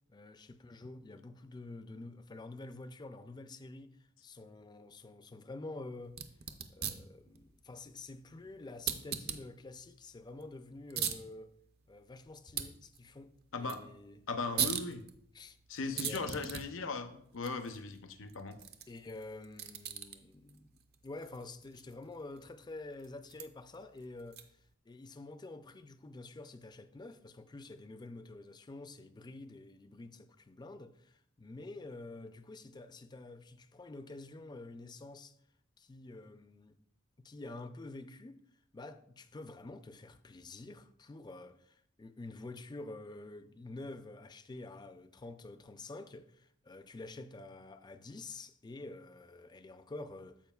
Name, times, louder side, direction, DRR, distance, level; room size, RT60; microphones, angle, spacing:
voice 1, 0.1-6.2 6.7-11.5 11.9-14.8 15.3-15.6 15.9-16.8 18.9-24.5 24.9-35.3 35.8-36.8 37.2-38.4 38.7-50.4, left 2 dB, 20° left, 0.4 m, -48 dB
sound 1, 6.1-24.7, right 8 dB, 55° right, 0.6 m, -43 dB
voice 2, 13.5-13.8 14.3-15.0 15.7-18.6, left 4 dB, 80° left, 0.7 m, -38 dB
14.5 x 5.0 x 2.3 m
head